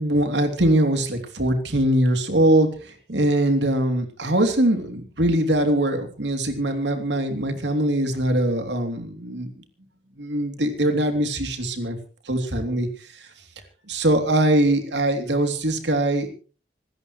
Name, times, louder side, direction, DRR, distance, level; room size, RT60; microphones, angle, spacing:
voice 1, 0.0-9.5 10.2-12.0 12.3-12.9 13.9-16.3, right 1 dB, 90° right, 6 dB, 3.1 m, -22 dB
26.0 x 13.5 x 3.2 m, 0.37 s
head